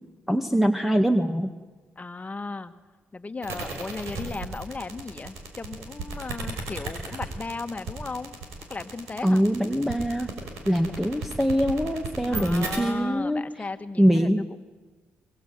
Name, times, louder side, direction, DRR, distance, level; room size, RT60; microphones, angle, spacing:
voice 1, 0.3-1.5 9.2-10.3 10.7-13.4 14.0-14.4, equal, 5° right, 6 dB, 2.0 m, -23 dB
voice 2, 2.0-2.7 3.1-8.4 8.7-9.4 12.3-14.3, left 3 dB, 30° left, 9 dB, 1.9 m, -35 dB
sound 1, 3.4-12.8, right 3 dB, 80° right, 6.1 m, -34 dB
24.0 x 22.0 x 9.3 m, 1.3 s
supercardioid pair, 50°, 5 cm